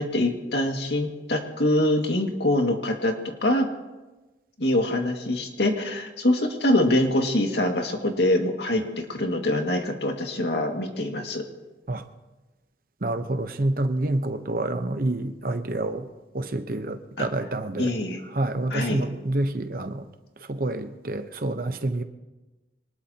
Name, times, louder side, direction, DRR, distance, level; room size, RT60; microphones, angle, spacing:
voice 1, 0.0-3.2 3.4-3.7 4.6-8.8 9.1-11.4 17.2-17.3 17.8-18.2 18.7-19.0, left 1 dB, 75° left, 3 dB, 2.1 m, -24 dB
voice 2, 13.0-16.1 16.3-17.9 18.3-20.1 20.5-22.0, right 2 dB, 55° right, 9 dB, 0.9 m, -28 dB
25.0 x 19.5 x 2.9 m, 1.1 s
head